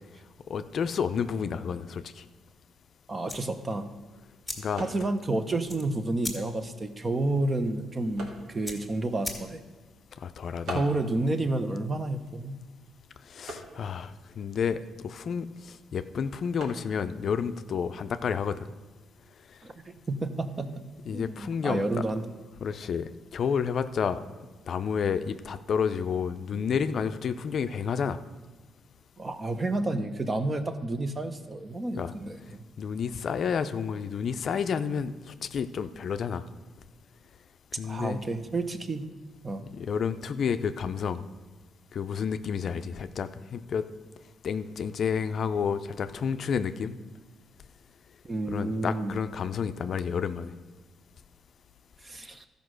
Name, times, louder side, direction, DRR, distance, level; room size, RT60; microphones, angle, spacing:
voice 1, 0.5-2.2 4.6-4.8 10.2-10.8 13.3-14.1 14.4-15.5 15.9-18.6 21.1-22.0 22.6-24.2 24.7-28.2 31.9-32.1 32.8-36.4 37.8-38.2 39.7-41.2 41.9-43.8 44.4-46.9 48.5-50.5, left 6 dB, 55° left, 11 dB, 0.4 m, -30 dB
voice 2, 3.1-3.9 4.8-9.6 10.7-12.6 19.6-22.3 29.2-32.6 37.8-39.1 39.4-39.6 48.2-49.2 52.0-52.5, right 2 dB, 25° right, 9 dB, 0.8 m, -30 dB
sound 1, 3.2-18.8, right 2 dB, 70° right, 1.8 m, -49 dB
sound 2, 3.3-9.9, left 1 dB, 5° left, 2.0 m, -42 dB
12.5 x 5.2 x 6.3 m, 1.3 s
cardioid pair, 90°, 0 cm